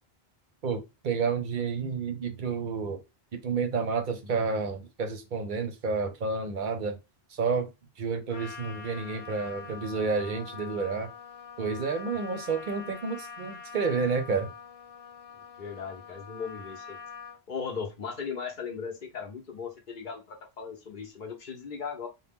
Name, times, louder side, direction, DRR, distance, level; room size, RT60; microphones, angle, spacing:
voice 1, 0.6-3.0 3.4-7.0 7.3-7.7 8.0-11.1 11.6-14.5, right 5 dB, 55° right, 0.7 m, -30 dB
Trumpet, 8.3-17.4, left 6 dB, 85° left, 0.9 m, -44 dB
voice 2, 15.6-17.0 17.5-22.1, left 6 dB, 55° left, 0.8 m, -37 dB
2.8 x 2.1 x 3.5 m
omnidirectional pair, 1.0 m